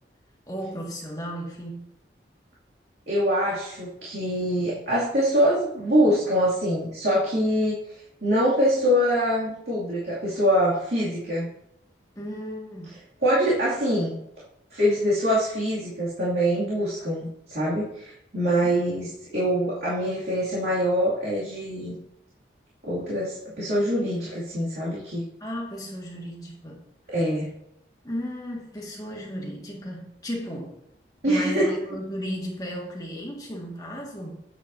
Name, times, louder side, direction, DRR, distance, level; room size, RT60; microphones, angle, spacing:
voice 1, 0.5-1.8 12.2-13.0 18.6-18.8 25.4-26.8 28.0-30.7 31.3-34.4, equal, 20° left, -2 dB, 1.8 m, -34 dB
voice 2, 3.1-7.8 8.2-11.5 13.2-14.1 14.7-21.9 22.9-25.2 27.1-27.5 31.2-31.7, equal, 70° right, -9 dB, 2.5 m, -24 dB
8.6 x 8.1 x 2.7 m, 0.77 s
head